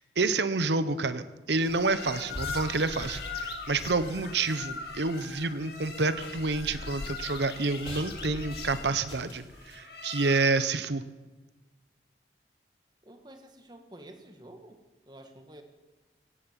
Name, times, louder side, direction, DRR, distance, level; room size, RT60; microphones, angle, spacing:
voice 1, 0.0-11.0, right 3 dB, 80° right, 12 dB, 1.0 m, -28 dB
sound 1, 1.6-10.8, left 4 dB, 65° left, 1.7 m, -41 dB
sound 2, 2.3-9.8, left 1 dB, 35° left, 3.7 m, -46 dB
sound 3, 3.6-4.3 4.8-9.0, left 2 dB, 80° left, 0.8 m, -46 dB
voice 2, 13.0-14.8 15.1-15.6, right 1 dB, 25° right, 6 dB, 1.7 m, -49 dB
17.0 x 11.0 x 7.5 m, 1.2 s
head